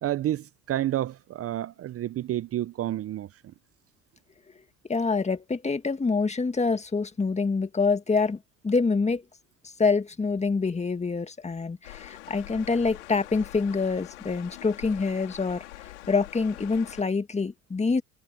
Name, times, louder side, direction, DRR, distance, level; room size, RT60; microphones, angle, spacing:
voice 1, 0.0-3.3, right 13 dB, 40° right, 0.7 m, -30 dB
voice 2, 4.9-8.4 8.6-9.2 9.8-18.0, left 4 dB, 20° left, 2.0 m, -26 dB
sound 1, 11.8-17.0, left 18 dB, 85° left, 4.2 m, -44 dB
hypercardioid pair, 75°, 34 cm